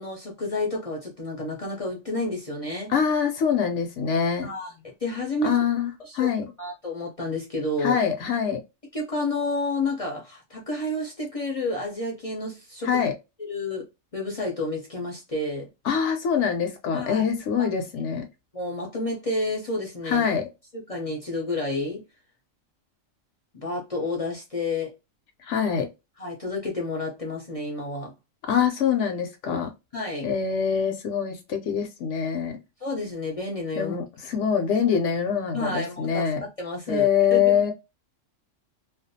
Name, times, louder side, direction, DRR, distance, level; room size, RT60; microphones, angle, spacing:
voice 1, 0.0-2.9 4.4-5.6 6.0-6.3 6.6-8.0 8.9-13.0 13.4-13.8 14.1-15.7 16.9-17.3 17.6-17.7 18.5-20.3 20.7-22.0 23.5-24.9 26.2-28.1 29.9-30.3 32.8-34.0 35.5-37.7, left 2 dB, 45° left, 0.4 m, -30 dB
voice 2, 2.9-4.5 5.4-5.9 6.1-6.5 7.8-8.6 12.8-13.1 15.8-18.3 20.1-20.5 25.5-25.9 28.5-29.7 30.2-32.6 33.8-36.4 36.9-37.7, left 7 dB, 70° left, 0.8 m, -24 dB
2.4 x 2.2 x 2.6 m
omnidirectional pair, 1.4 m